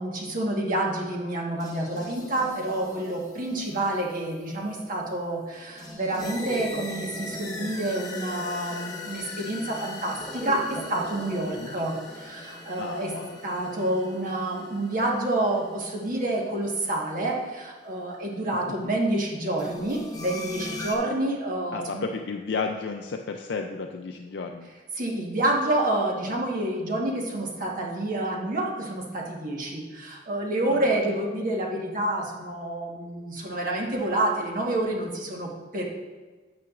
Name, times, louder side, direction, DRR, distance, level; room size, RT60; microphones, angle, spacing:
voice 1, 0.0-13.1 13.4-22.0 25.0-35.8, right 1 dB, 50° right, -1 dB, 1.3 m, -28 dB
sound 1, 1.6-17.7 19.6-20.9, left 1 dB, 20° left, 1.0 m, -40 dB
voice 2, 12.8-13.4 21.7-24.7 30.7-31.2, left 4 dB, 70° left, 3 dB, 0.4 m, -33 dB
9.3 x 8.9 x 2.4 m, 1.3 s
head